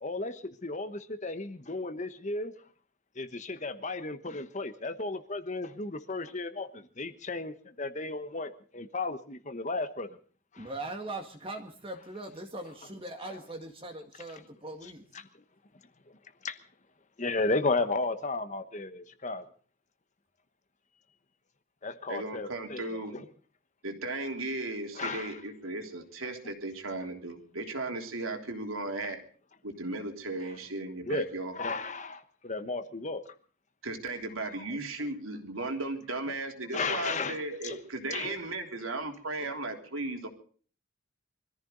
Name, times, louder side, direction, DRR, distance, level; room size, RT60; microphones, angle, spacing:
voice 1, 0.0-2.5 3.2-10.1 10.5-10.7 14.8-14.9 16.4-16.6 17.2-19.4 21.8-23.3 25.0-25.3 31.0-31.3 31.5-33.2 36.7-37.8 38.1-38.3 39.4-39.5, left 3 dB, 35° left, 10 dB, 1.1 m, -34 dB
voice 2, 10.6-15.1, right 2 dB, 25° right, 4 dB, 1.8 m, -40 dB
voice 3, 22.1-23.1 23.8-29.2 29.6-31.6 33.8-40.3, right 2 dB, 80° right, 4 dB, 3.4 m, -36 dB
24.5 x 14.5 x 3.9 m, 0.43 s
head